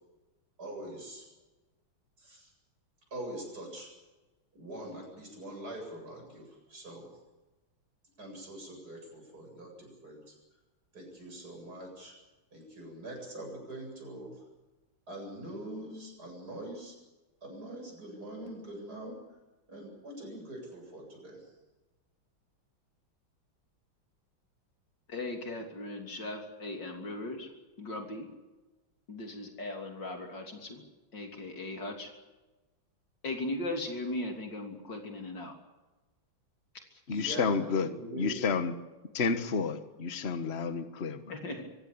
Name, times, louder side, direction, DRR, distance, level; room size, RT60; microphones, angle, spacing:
voice 1, 0.6-1.3 2.2-2.5 3.1-3.9 4.5-7.1 8.2-10.4 10.9-12.2 12.5-14.4 15.1-17.0 17.4-19.2 19.7-21.5 37.1-38.5, right 1 dB, 50° right, 8.7 m, -43 dB
voice 2, 25.1-27.5 27.8-28.3 29.1-30.8 31.1-32.1 33.2-35.5 41.3-41.7, left 2 dB, 60° left, 3.8 m, -38 dB
voice 3, 37.1-37.9 38.2-38.7 39.1-41.3, left 5 dB, 35° left, 1.6 m, -30 dB
25.5 x 16.0 x 8.7 m
omnidirectional pair, 2.2 m